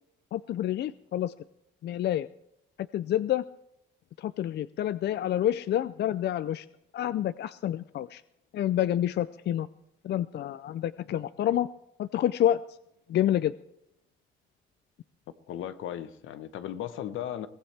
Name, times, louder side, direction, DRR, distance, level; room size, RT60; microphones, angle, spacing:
voice 1, 0.3-1.3 1.8-2.3 2.9-3.4 4.2-6.7 6.9-8.2 8.5-9.7 10.0-11.7 12.0-12.6 13.1-13.6, left 11 dB, 60° left, 15 dB, 0.5 m, -28 dB
voice 2, 15.5-17.5, left 10 dB, 80° left, 11 dB, 1.0 m, -36 dB
22.5 x 16.0 x 3.4 m, 0.81 s
cardioid pair, 90°, 20 cm